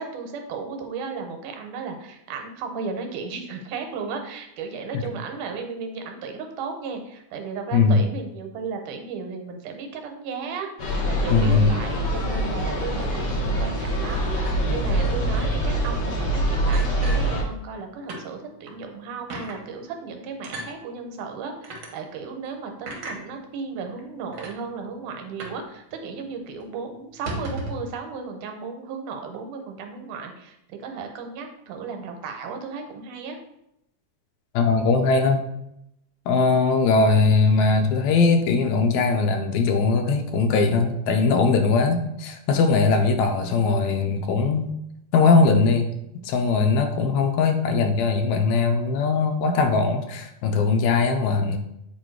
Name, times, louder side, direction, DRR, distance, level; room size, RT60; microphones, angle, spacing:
voice 1, 0.0-10.7 11.0-33.4, right 5 dB, 85° right, 4 dB, 2.4 m, -35 dB
voice 2, 7.7-8.0 11.3-11.7 34.5-35.4 36.3-44.7 45.1-45.9 46.2-51.6, left 4 dB, 80° left, 5 dB, 1.9 m, -20 dB
sound 1, 10.8-17.4, right 1 dB, 55° left, 1.2 m, -24 dB
sound 2, 16.7-17.8 18.1-18.3 18.7-18.8 19.3-19.6 20.4-20.7 21.6-21.9 22.9-23.2 24.0-24.1 24.3-24.5 25.4-25.7 25.9-26.0 26.4-26.5 27.1-27.9, right 1 dB, 55° right, 1.5 m, -35 dB
8.3 x 3.1 x 4.5 m, 0.81 s
omnidirectional pair, 3.5 m